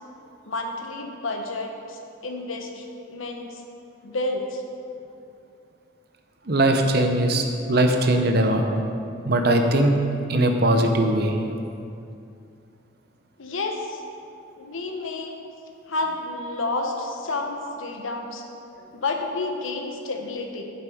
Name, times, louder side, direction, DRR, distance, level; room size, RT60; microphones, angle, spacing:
voice 1, 0.5-3.6 4.0-4.6 13.4-14.0 14.6-15.4 15.9-18.4 18.9-20.6, left 2 dB, 85° left, 3 dB, 1.1 m, -30 dB
voice 2, 6.5-8.6 9.3-10.0 10.3-11.4, right 1 dB, 50° right, 4 dB, 0.8 m, -20 dB
8.8 x 7.4 x 5.1 m, 2.6 s
head